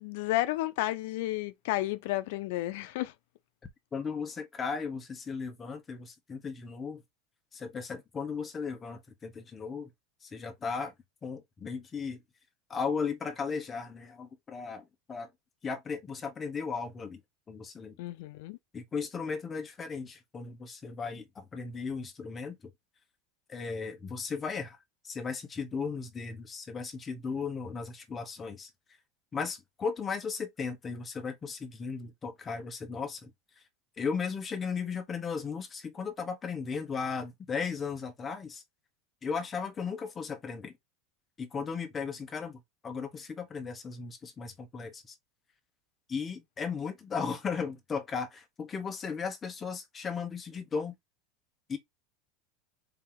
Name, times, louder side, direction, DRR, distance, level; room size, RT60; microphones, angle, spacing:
voice 1, 0.0-3.1 18.0-18.6, left 16 dB, 65° left, 0.4 m, -32 dB
voice 2, 3.9-7.0 7.5-9.9 10.2-10.9 11.2-12.2 12.7-15.3 15.6-17.2 17.5-18.0 18.7-22.7 23.5-24.8 25.0-28.7 29.3-33.3 33.6-33.7 34.0-38.6 39.2-40.7 41.4-45.2 46.1-50.9 51.7-51.8, left 5 dB, 20° left, 0.9 m, -36 dB
4.4 x 2.7 x 3.8 m
supercardioid pair, 155°, 0 cm